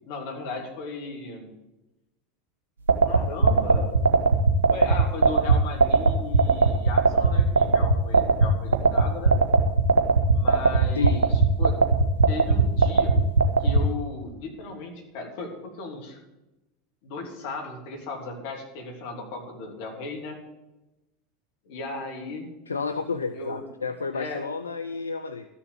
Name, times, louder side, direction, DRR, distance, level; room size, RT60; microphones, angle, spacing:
voice 1, 0.1-1.5 3.0-4.0 4.7-9.4 10.3-11.8 12.3-13.2 13.6-16.2 17.0-20.4 21.6-22.5 23.3-23.6 24.1-24.4, left 3 dB, 55° left, 1 dB, 2.9 m, -36 dB
sound 1, 2.9-13.8, right 4 dB, 70° right, 1.1 m, -18 dB
voice 2, 22.7-25.5, left 5 dB, 80° left, 8 dB, 0.5 m, -30 dB
13.0 x 7.2 x 8.4 m, 1.0 s
figure-of-eight pair, 80°, 0 cm